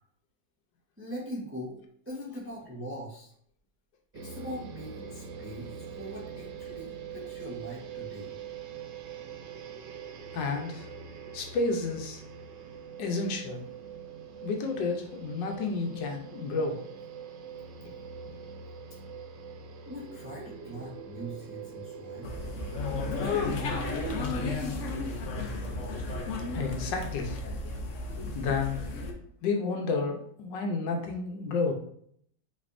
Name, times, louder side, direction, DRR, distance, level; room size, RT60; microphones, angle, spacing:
voice 1, 1.0-1.8 2.1-3.3 4.1-8.3 19.9-22.3 23.1-24.8, equal, 10° right, -4 dB, 0.6 m, -41 dB
sound 1, 4.1-23.9, right 6 dB, 85° right, 1.3 m, -43 dB
voice 2, 10.3-10.9 11.3-12.2 13.0-13.6 14.4-16.8 18.3-18.4 26.5-27.5 28.3-28.8 29.4-31.7, left 4 dB, 90° left, 3 dB, 1.5 m, -31 dB
sound 2, 22.2-29.1, left 3 dB, 60° left, 0.8 m, -33 dB
5.3 x 3.5 x 2.6 m, 0.65 s
omnidirectional pair, 1.9 m